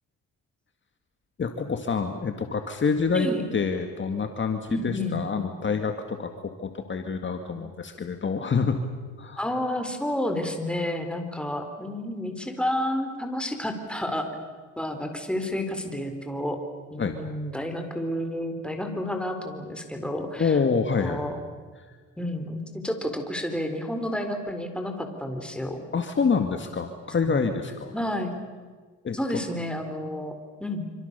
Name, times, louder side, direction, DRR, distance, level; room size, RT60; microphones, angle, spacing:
voice 1, 1.4-8.8 9.2-9.4 17.0-17.2 20.4-21.2 25.9-27.9 29.0-29.2, left 5 dB, 40° left, 6 dB, 2.0 m, -27 dB
voice 2, 4.7-5.2 9.4-14.2 14.8-16.6 16.9-20.6 20.9-21.4 22.2-25.8 27.1-27.4 27.9-28.4 29.1-30.3 30.6-30.9, left 1 dB, 5° left, 5 dB, 4.2 m, -30 dB
26.5 x 25.5 x 6.9 m, 1.5 s
cardioid pair, 90°, 30 cm